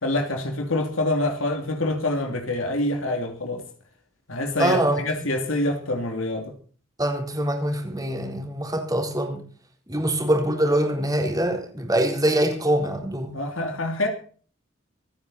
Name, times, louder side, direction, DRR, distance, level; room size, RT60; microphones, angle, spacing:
voice 1, 0.0-3.6 4.3-6.5 13.3-14.1, left 2 dB, 85° left, 3.0 m, -26 dB
voice 2, 4.6-5.1 7.0-9.4 9.9-13.3, right 1 dB, 20° right, 4.0 m, -24 dB
25.0 x 9.7 x 4.2 m
head